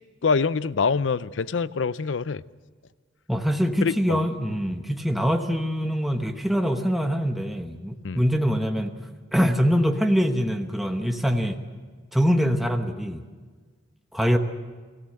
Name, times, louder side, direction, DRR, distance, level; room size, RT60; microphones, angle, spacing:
voice 1, 0.2-2.4 3.8-4.2 8.0-8.2, left 5 dB, 75° left, 0.6 m, -25 dB
voice 2, 3.3-8.9 9.3-11.6 12.1-13.2 14.1-14.4, equal, ahead, 1.0 m, -24 dB
24.0 x 15.0 x 7.7 m
head